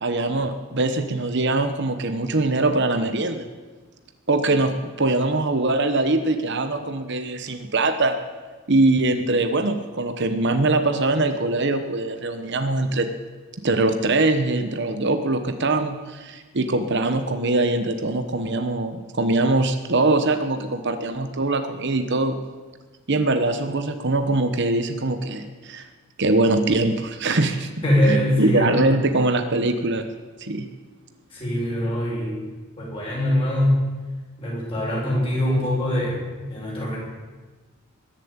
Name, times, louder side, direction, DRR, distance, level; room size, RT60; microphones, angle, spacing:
voice 1, 0.0-3.5 4.3-4.7 5.0-8.2 8.7-13.1 13.6-22.4 23.1-25.9 26.2-27.7 28.0-30.1 30.4-30.7, right 2 dB, 55° right, 8 dB, 1.0 m, -22 dB
voice 2, 27.8-28.8 31.3-32.4 32.8-33.9 34.4-37.0, left 1 dB, 25° left, -6 dB, 6.9 m, -23 dB
21.0 x 7.5 x 8.8 m, 1.3 s
head